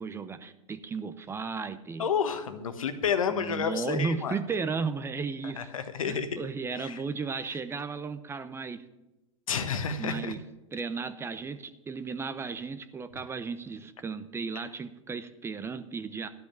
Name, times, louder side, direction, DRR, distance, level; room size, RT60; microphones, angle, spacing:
voice 1, 0.0-2.1 3.3-5.7 6.0-8.8 10.0-10.4 10.7-16.3, right 5 dB, 15° right, 12 dB, 0.7 m, -35 dB
voice 2, 2.0-4.4 5.4-6.3 6.7-7.0 9.5-10.3, left 6 dB, 85° left, 9 dB, 1.3 m, -30 dB
12.0 x 5.8 x 8.9 m, 0.97 s
hypercardioid pair, 115°, 17 cm